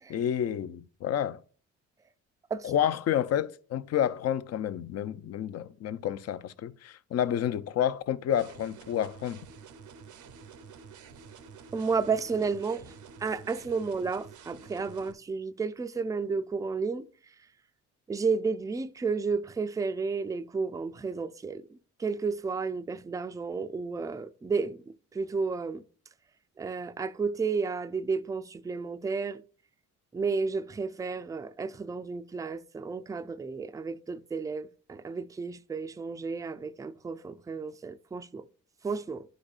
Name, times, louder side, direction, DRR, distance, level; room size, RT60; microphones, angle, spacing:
voice 1, 0.1-1.4 2.6-9.4, left 10 dB, 55° left, 0.5 m, -29 dB
sound 1, 8.3-15.1, right 6 dB, 80° right, 0.7 m, -49 dB
voice 2, 11.7-12.9 13.2-17.1 18.1-21.6 22.0-24.8 25.1-25.8 26.6-29.4 30.1-38.4 38.8-39.2, right 4 dB, 10° right, 0.3 m, -32 dB
11.5 x 5.0 x 2.4 m
cardioid pair, 90°, 30 cm